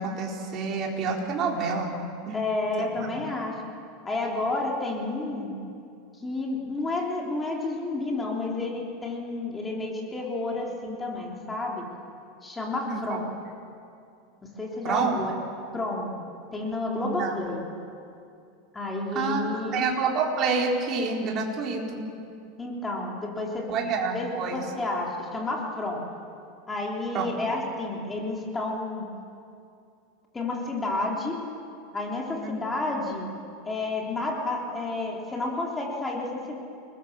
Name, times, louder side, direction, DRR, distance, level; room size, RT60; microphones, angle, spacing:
voice 1, 0.0-1.9 2.3-2.4 3.0-3.1 12.8-13.2 14.8-15.2 17.0-17.4 19.1-19.5 19.7-22.1 23.7-24.6 27.1-27.3 32.4-32.5, right 4 dB, 35° right, -1 dB, 4.3 m, -28 dB
voice 2, 2.3-3.5 4.0-5.5 6.2-11.9 12.4-13.3 14.6-15.3 15.7-16.2 16.5-17.6 18.7-19.8 22.6-23.8 24.1-26.1 26.7-29.1 30.3-31.4 31.9-33.3 33.6-36.6, left 2 dB, 10° left, -1 dB, 3.5 m, -30 dB
29.0 x 20.5 x 7.4 m, 2.5 s
supercardioid pair, 150°, 0 cm